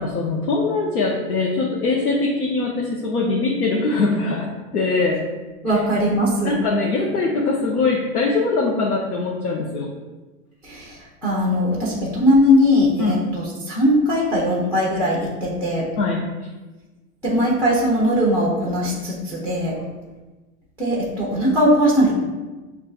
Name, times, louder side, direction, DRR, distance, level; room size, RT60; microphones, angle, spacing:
voice 1, 0.0-5.2 5.7-5.8 6.4-9.9 13.0-13.2 16.0-16.2 19.7-19.8, left 3 dB, 85° left, -2 dB, 0.8 m, -22 dB
voice 2, 5.6-6.5 10.6-15.9 17.2-19.7 20.8-22.1, equal, 5° left, -5 dB, 0.5 m, -19 dB
6.2 x 2.4 x 2.3 m, 1.2 s
hypercardioid pair, 120°, 43 cm